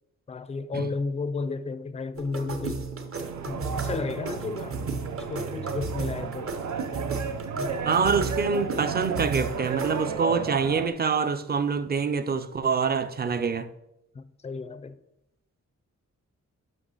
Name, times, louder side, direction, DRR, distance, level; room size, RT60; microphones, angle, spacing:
voice 1, 0.3-2.9 3.5-4.8 5.3-6.6 7.5-7.8 14.1-15.0, left 4 dB, 25° left, 0.4 m, -33 dB
Psychedelic seven percussion loop, 2.2-10.1, right 4 dB, 50° right, 0.9 m, -35 dB
sound 1, 3.1-10.9, right 6 dB, 80° right, 0.7 m, -33 dB
voice 2, 7.8-13.7, right 5 dB, 35° right, 0.5 m, -26 dB
12.0 x 5.6 x 3.9 m
wide cardioid pair, 180°, 29 cm